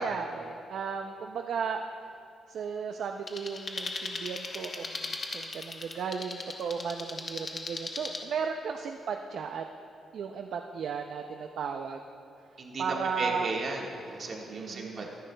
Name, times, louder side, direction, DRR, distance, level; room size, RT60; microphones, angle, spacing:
voice 1, 0.0-1.8 2.5-9.6 10.1-12.0 12.8-13.5 14.5-15.1, right 6 dB, 60° right, 4 dB, 0.5 m, -35 dB
sound 1, 3.3-8.2, left 3 dB, 25° left, 0.8 m, -38 dB
voice 2, 12.6-15.1, right 3 dB, 40° right, -1 dB, 1.6 m, -35 dB
24.0 x 10.0 x 2.3 m, 2.8 s
wide cardioid pair, 175°, 0 cm